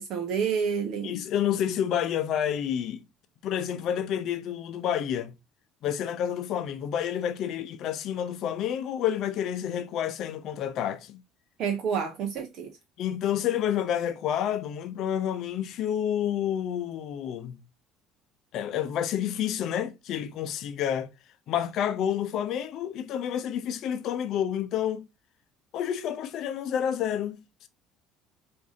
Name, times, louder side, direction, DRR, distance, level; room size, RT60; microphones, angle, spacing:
voice 1, 0.0-1.1 11.6-12.7, right 6 dB, 50° right, 0.6 m, -29 dB
voice 2, 1.0-3.0 3.4-5.3 5.8-11.2 13.0-17.6 18.5-21.1 21.5-25.0 25.7-27.7, left 9 dB, 50° left, 0.5 m, -29 dB
4.6 x 2.6 x 3.7 m
figure-of-eight pair, 55°, 0 cm